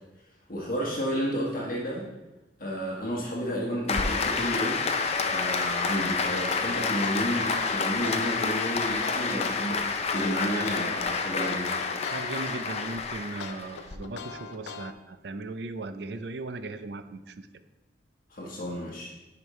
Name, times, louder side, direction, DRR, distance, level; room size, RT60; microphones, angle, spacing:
voice 1, 0.5-2.1 2.6-4.8 5.3-9.8 10.1-11.7 18.3-19.1, equal, 50° left, -5 dB, 1.4 m, -31 dB
Applause, 3.9-13.9, left 4 dB, 35° left, 0.5 m, -29 dB
sound 1, 6.7-11.0 11.4-13.0 13.4-14.9, left 5 dB, 85° left, 0.6 m, -40 dB
voice 2, 12.1-17.5, right 2 dB, 70° right, 10 dB, 0.5 m, -37 dB
10.5 x 5.2 x 3.2 m, 1.1 s
head